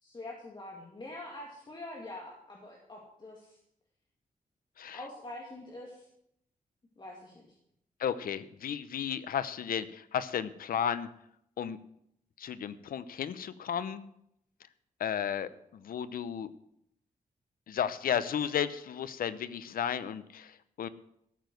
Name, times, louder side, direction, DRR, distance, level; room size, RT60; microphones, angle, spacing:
voice 1, 0.0-3.6 4.9-6.1 7.0-7.6, left 2 dB, 30° left, -1 dB, 2.3 m, -45 dB
voice 2, 8.0-11.1 11.6-11.8 12.4-14.0 15.0-16.5 17.7-20.9, left 8 dB, 85° left, 14 dB, 0.8 m, -33 dB
14.0 x 7.0 x 7.8 m, 0.75 s
wide cardioid pair, 110°, 14 cm